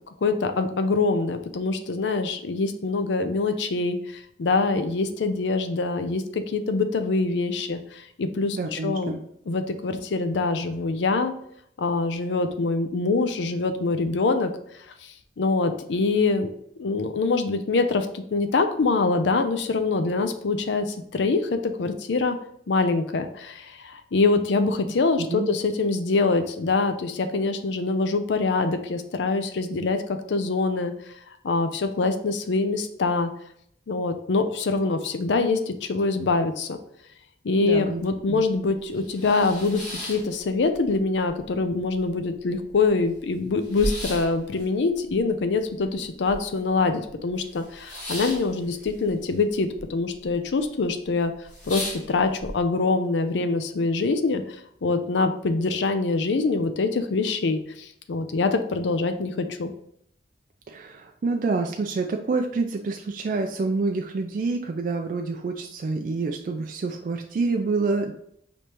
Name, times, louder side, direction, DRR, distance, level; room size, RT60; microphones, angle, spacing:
voice 1, 0.2-9.2 9.5-11.3 11.8-14.5 15.0-16.5 16.8-22.4 22.7-30.0 30.3-30.9 31.4-33.3 33.9-36.8 37.4-51.3 51.7-54.4 54.8-59.7, left 3 dB, 85° left, 8 dB, 0.5 m, -24 dB
voice 2, 8.5-9.2 25.2-25.5 37.6-38.0 38.3-38.4 60.7-68.1, right 3 dB, 50° right, 4 dB, 0.3 m, -27 dB
sound 1, 38.2-38.3 38.7-40.9 41.3-42.0 42.3-42.4 42.6-46.8 47.0-49.8 50.1-50.6 51.0-51.1 51.4-52.5, equal, 45° left, 1.8 m, -36 dB
5.1 x 3.2 x 2.9 m, 0.71 s
head